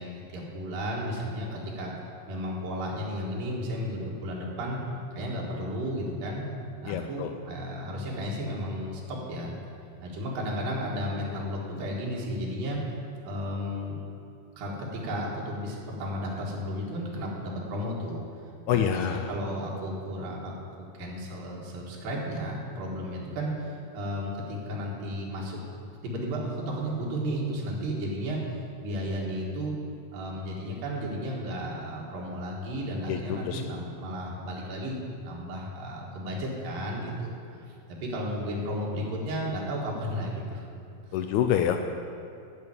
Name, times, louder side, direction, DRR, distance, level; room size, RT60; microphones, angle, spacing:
voice 1, 0.0-2.0 2.3-4.8 5.1-6.4 6.8-9.6 10.0-12.8 13.2-14.0 14.6-18.2 18.7-29.8 30.1-40.7 41.1-41.2, equal, 90° right, -3 dB, 3.5 m, -33 dB
voice 2, 6.9-7.3 18.7-19.2 33.1-33.6 41.1-41.8, left 9 dB, 85° left, 6 dB, 1.7 m, -26 dB
10.5 x 6.5 x 8.9 m, 2.6 s
omnidirectional pair, 3.9 m